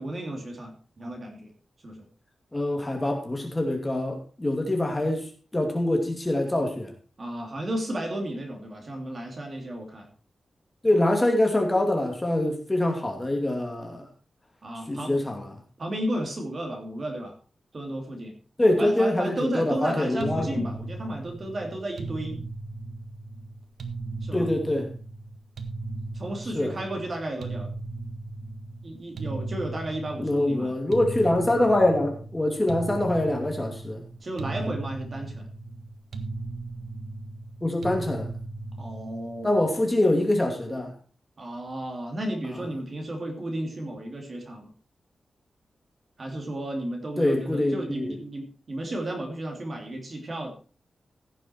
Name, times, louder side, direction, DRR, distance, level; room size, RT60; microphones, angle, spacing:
voice 1, 0.0-1.5 1.8-2.1 7.2-10.1 14.6-15.1 15.8-17.4 17.7-18.3 18.8-22.4 24.2-24.5 26.1-27.7 28.8-30.7 34.2-35.5 38.8-39.8 41.4-44.7 46.2-50.5, right 1 dB, 40° right, 2 dB, 2.9 m, -33 dB
voice 2, 2.5-6.9 10.8-14.0 14.9-15.5 18.6-20.7 24.3-24.9 26.5-26.7 30.2-34.0 37.6-38.3 39.4-40.9 42.4-42.6 47.2-48.1, left 1 dB, 15° left, 2 dB, 2.5 m, -24 dB
sound 1, 20.2-39.5, right 3 dB, 80° right, 1.6 m, -37 dB
16.0 x 7.1 x 4.6 m, 0.37 s
wide cardioid pair, 160°, 0 cm